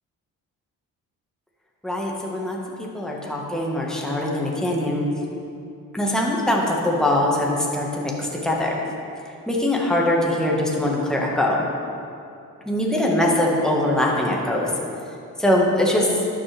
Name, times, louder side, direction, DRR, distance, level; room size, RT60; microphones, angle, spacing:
voice 1, 1.8-2.6 2.9-5.0 5.9-8.8 9.5-11.6 12.6-14.7 15.4-16.1, left 1 dB, ahead, -3 dB, 1.6 m, -22 dB
12.0 x 7.7 x 3.5 m, 2.6 s
cardioid pair, 85°, 34 cm